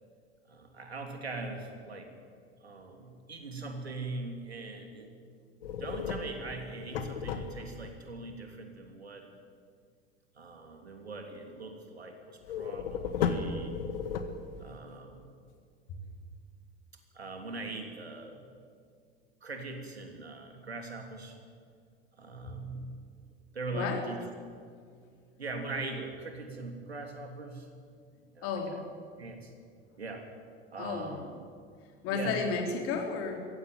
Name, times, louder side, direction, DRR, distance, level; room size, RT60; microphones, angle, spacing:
voice 1, 0.5-2.1 2.6-5.1 5.8-9.3 10.3-13.7 14.6-15.3 17.1-18.4 19.4-21.3 22.1-22.9 23.5-24.2 25.4-27.7 28.3-28.8 29.2-29.5 30.0-30.3 30.7-31.3 32.1-32.5, right 3 dB, 80° right, 4 dB, 3.2 m, -41 dB
sound 1, 5.6-7.9 12.5-14.8, left 6 dB, 65° left, 1.8 m, -34 dB
voice 2, 23.7-24.0 28.4-28.7 30.8-31.1 32.0-33.4, left 5 dB, 45° left, 3 dB, 4.3 m, -32 dB
21.5 x 16.5 x 9.4 m, 2.2 s
figure-of-eight pair, 75°, 31 cm